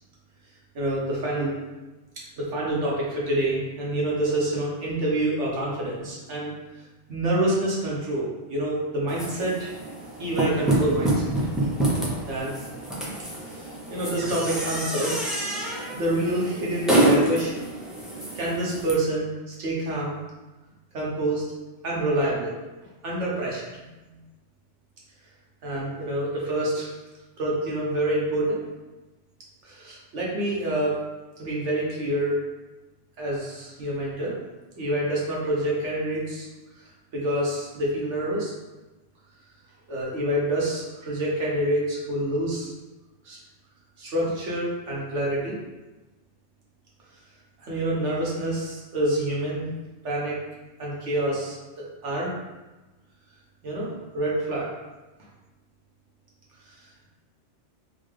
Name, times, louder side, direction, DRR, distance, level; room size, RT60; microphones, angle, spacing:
voice 1, 0.7-1.5 2.4-6.5 7.1-9.7 10.2-11.1 12.3-12.5 13.5-15.3 15.9-17.5 18.3-20.2 20.9-21.4 21.8-22.5 23.0-23.6 25.6-26.9 27.4-28.6 29.6-31.0 31.4-32.3 33.2-34.3 34.7-36.5 37.1-38.5 39.9-42.7 43.2-43.4 44.0-45.6 47.6-49.7 50.0-50.4 50.8-51.6 52.0-52.3 53.6-53.9 54.1-54.7, right 1 dB, 75° right, -5 dB, 1.3 m, -27 dB
sound 1, 9.1-18.9, right 1 dB, ahead, 0.3 m, -27 dB
4.0 x 2.3 x 3.2 m, 1.1 s
omnidirectional pair, 1.2 m